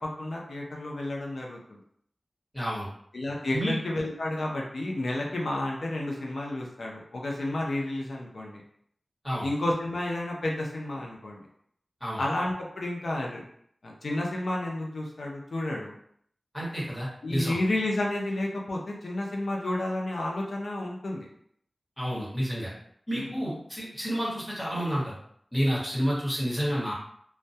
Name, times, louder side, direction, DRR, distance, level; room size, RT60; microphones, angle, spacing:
voice 1, 0.0-1.8 3.1-8.6 9.4-11.5 12.2-13.4 13.8-15.9 17.2-21.3 23.1-23.3, left 1 dB, 80° left, -1 dB, 0.5 m, -31 dB
voice 2, 2.5-2.9 3.5-3.8 9.2-9.5 12.0-12.2 16.5-17.5 22.0-22.7 23.1-25.1 25.5-26.9, equal, 10° left, -7 dB, 1.1 m, -29 dB
2.2 x 2.1 x 2.6 m, 0.67 s
wide cardioid pair, 60°, 0 cm